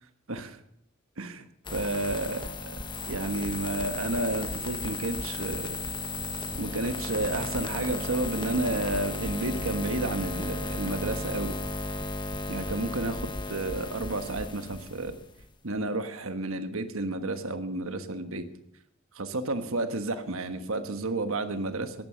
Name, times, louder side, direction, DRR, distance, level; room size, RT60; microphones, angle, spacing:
sound 1, 1.7-15.5, left 2 dB, 20° left, 1.2 m, -34 dB
voice 1, 1.7-2.8 3.1-5.8 6.6-11.5 12.5-13.2 13.5-15.2 15.6-18.5 19.1-21.9, right 2 dB, 70° right, 9 dB, 1.4 m, -31 dB
14.5 x 10.5 x 6.5 m, 0.75 s
head